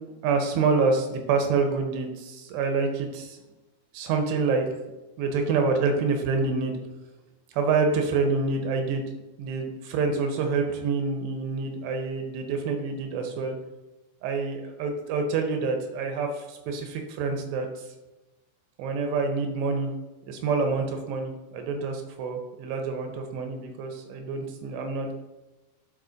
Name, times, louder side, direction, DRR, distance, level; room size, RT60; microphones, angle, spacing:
voice 1, 0.2-3.4 3.9-4.7 5.2-6.8 7.5-9.0 9.4-13.6 14.2-17.9 18.8-19.9 20.3-25.1, right 4 dB, 85° right, 4 dB, 2.8 m, -27 dB
11.5 x 4.3 x 2.5 m, 1.0 s
omnidirectional pair, 5.1 m